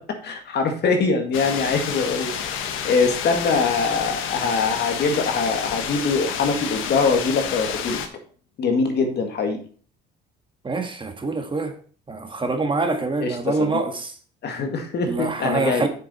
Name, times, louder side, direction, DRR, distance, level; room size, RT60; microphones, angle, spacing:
voice 1, 0.0-8.0 8.6-9.6 13.2-13.8 14.4-15.9, left 4 dB, 55° left, 2.1 m, -23 dB
sound 1, 1.3-8.1, left 8 dB, 75° left, 1.2 m, -29 dB
voice 2, 10.6-11.8 12.1-14.1 15.0-15.9, right 3 dB, 25° right, 1.6 m, -25 dB
7.5 x 6.8 x 4.3 m
supercardioid pair, 85°, 21 cm